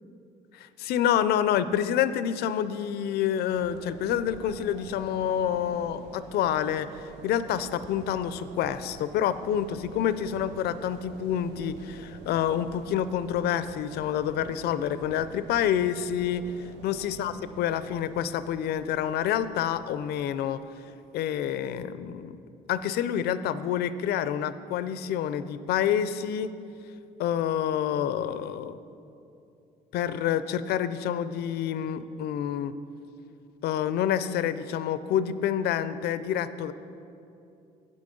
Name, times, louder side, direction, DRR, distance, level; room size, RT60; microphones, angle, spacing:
voice 1, 0.5-20.6 21.1-22.4 22.7-26.5 27.2-28.8 29.9-32.7 33.6-36.7, left 9 dB, 70° left, 13 dB, 0.4 m, -28 dB
sound 1, 3.5-21.4, right 6 dB, 80° right, 0.5 m, -48 dB
8.6 x 7.6 x 3.8 m, 2.7 s
cardioid pair, 110°, 17 cm